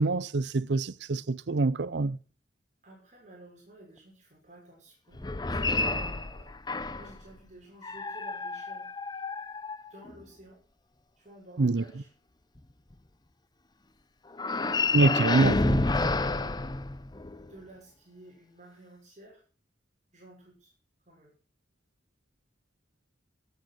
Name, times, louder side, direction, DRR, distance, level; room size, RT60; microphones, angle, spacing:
voice 1, 0.0-2.2 11.6-11.8 14.9-16.0, right 3 dB, 75° right, 0.6 m, -25 dB
voice 2, 2.8-5.2 5.5-6.5 7.0-8.9 9.9-10.6 11.2-12.1 14.5-15.4 16.2-17.1 17.4-19.4 20.1-20.7 21.1-21.3, right 1 dB, 45° right, 5.9 m, -52 dB
sound 1, 5.1-7.2 7.8-10.2 14.3-17.5, left 3 dB, 25° left, 0.7 m, -29 dB
17.5 x 8.5 x 6.4 m
head